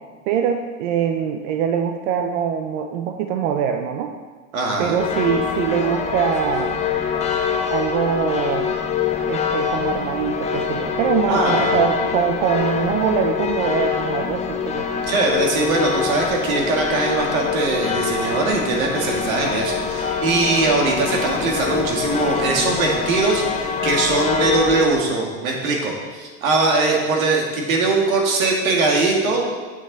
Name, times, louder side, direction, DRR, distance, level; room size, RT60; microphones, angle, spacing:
voice 1, 0.3-4.1 4.8-6.8 7.7-8.8 9.3-15.1, right 7 dB, 65° right, 6 dB, 0.8 m, -23 dB
voice 2, 4.5-5.0 11.3-11.8 15.1-29.4, right 3 dB, 90° right, 0 dB, 2.1 m, -21 dB
sound 1, 5.0-24.9, left 6 dB, 15° left, 0.7 m, -24 dB
8.6 x 7.2 x 4.0 m, 1.4 s
supercardioid pair, 135°, 40 cm